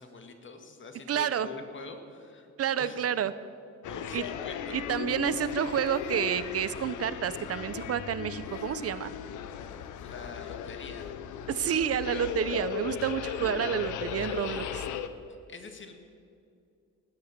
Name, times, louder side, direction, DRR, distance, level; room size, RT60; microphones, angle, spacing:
voice 1, 0.0-3.0 3.9-4.9 10.0-11.1 11.7-11.8 15.3-15.9, left 4 dB, 40° left, 6 dB, 2.0 m, -45 dB
voice 2, 1.1-1.5 2.6-3.3 4.1-4.2 4.7-9.1 11.5-14.8, right 9 dB, 50° right, 15 dB, 0.8 m, -29 dB
sound 1, 3.8-15.1, left 8 dB, 80° left, 0.9 m, -37 dB
19.0 x 8.2 x 6.7 m, 2.4 s
cardioid pair, 90°, 30 cm